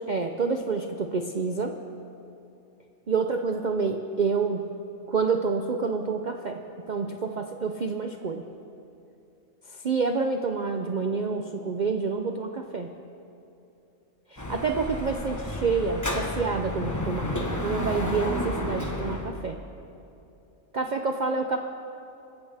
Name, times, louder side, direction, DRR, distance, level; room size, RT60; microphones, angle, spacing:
voice 1, 0.1-1.8 3.1-4.6 5.1-8.5 9.7-12.9 14.3-17.3 17.6-19.6 20.7-21.6, right 4 dB, 45° right, 4 dB, 0.7 m, -28 dB
Dog / Motorcycle, 14.4-19.3, left 1 dB, 15° left, 1.2 m, -31 dB
25.5 x 15.0 x 3.5 m, 2.8 s
omnidirectional pair, 1.4 m